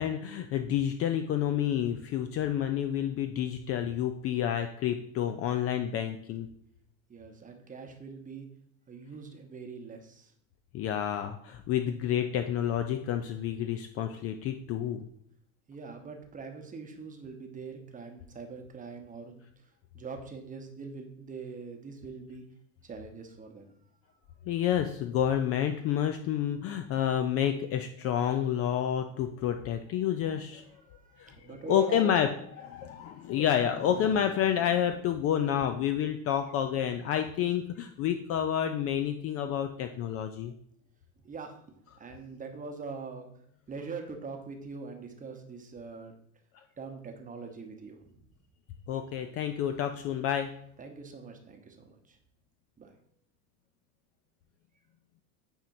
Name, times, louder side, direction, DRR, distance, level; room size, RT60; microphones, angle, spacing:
voice 1, 0.0-6.5 10.7-15.1 24.5-30.8 31.2-31.4 31.7-32.3 32.6-40.5 46.5-46.6 48.9-50.5, left 9 dB, 35° left, 7 dB, 0.4 m, -29 dB
voice 2, 7.1-8.5 8.9-10.3 15.7-19.5 19.9-22.4 22.8-23.7 30.9-32.2 41.2-41.6 42.0-43.3 43.7-46.1 46.8-48.2 50.8-52.2 52.8-52.9, right 4 dB, 20° right, 4 dB, 0.9 m, -43 dB
8.9 x 4.4 x 2.6 m, 0.68 s
supercardioid pair, 115°, 42 cm